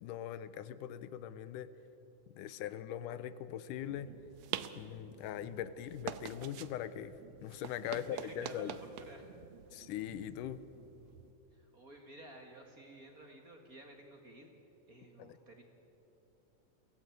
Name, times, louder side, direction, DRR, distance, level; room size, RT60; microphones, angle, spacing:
voice 1, 0.0-1.7 2.3-4.1 4.8-7.1 7.4-8.8 9.7-10.6 15.2-15.4, left 10 dB, 90° left, 14 dB, 2.3 m, -41 dB
sound 1, 3.8-11.3, right 11 dB, 75° right, 1.6 m, -47 dB
voice 2, 7.8-9.3 11.5-14.5 14.9-15.6, right 1 dB, 35° right, 2 dB, 1.7 m, -53 dB
23.5 x 16.5 x 9.3 m, 2.9 s
omnidirectional pair, 3.6 m